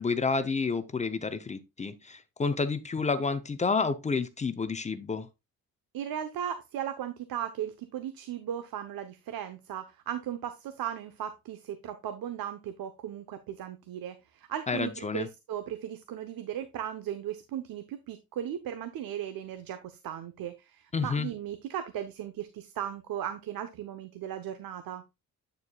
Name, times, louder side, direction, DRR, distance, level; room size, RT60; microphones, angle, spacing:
voice 1, 0.0-5.3 14.7-15.3 20.9-21.3, left 4 dB, 20° left, 0.5 m, -30 dB
voice 2, 5.9-25.0, right 10 dB, 85° right, 0.9 m, -37 dB
9.2 x 6.8 x 2.2 m
wide cardioid pair, 165°, 34 cm